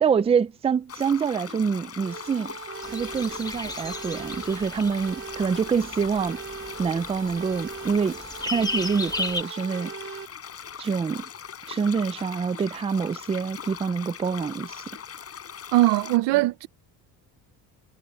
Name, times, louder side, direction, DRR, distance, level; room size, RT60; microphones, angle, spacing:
voice 1, 0.0-2.5 2.9-6.4 6.8-8.2 8.5-9.9 10.8-11.2 11.7-14.8 16.3-16.4, right 6 dB, 15° right, 0.5 m, -26 dB
sound 1, 0.9-16.2, left 7 dB, 35° left, 5.7 m, -40 dB
sound 2, 2.0-10.2, right 6 dB, 30° right, 5.4 m, -40 dB
sound 3, 2.8-9.4, left 2 dB, 10° left, 1.1 m, -36 dB
voice 2, 15.7-16.7, right 17 dB, 85° right, 1.1 m, -20 dB
cardioid pair, 140°, 41 cm